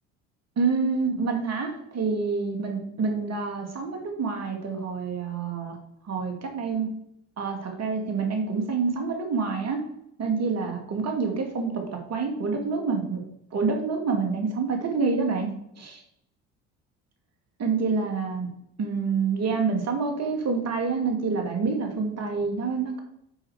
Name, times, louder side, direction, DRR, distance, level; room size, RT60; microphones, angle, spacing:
voice 1, 0.6-5.8 6.0-6.9 7.4-9.8 10.2-13.2 13.5-15.5 15.8-16.0 17.6-18.5 18.8-23.0, right 4 dB, 45° right, 3 dB, 2.4 m, -27 dB
8.8 x 5.1 x 4.8 m, 0.74 s
hypercardioid pair, 70°, 36 cm